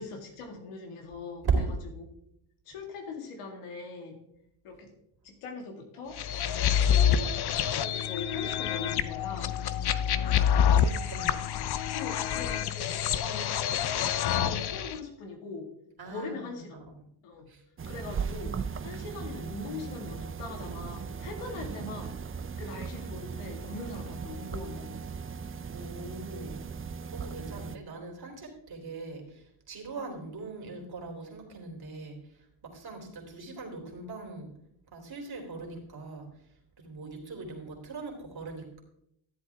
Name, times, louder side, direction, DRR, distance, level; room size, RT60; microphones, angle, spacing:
voice 1, 0.0-1.7 2.0-2.2 2.7-4.2 4.6-4.9 5.2-6.2 6.8-9.5 11.9-13.5 14.4-15.7 16.0-16.8 17.2-17.5 17.9-22.2 22.6-25.0, left 3 dB, 90° left, 3 dB, 2.2 m, -41 dB
sound 1, 6.2-15.0, left 9 dB, 50° left, 0.7 m, -27 dB
voice 2, 10.7-11.4 16.0-16.8 17.5-18.4 25.7-26.6 27.1-32.2 32.6-34.5 34.9-36.3 36.8-38.8, right 4 dB, 50° right, 0 dB, 3.5 m, -38 dB
sound 2, 17.8-27.8, right 6 dB, 25° right, 0.6 m, -38 dB
13.5 x 7.9 x 3.6 m, 0.74 s
supercardioid pair, 70°, 49 cm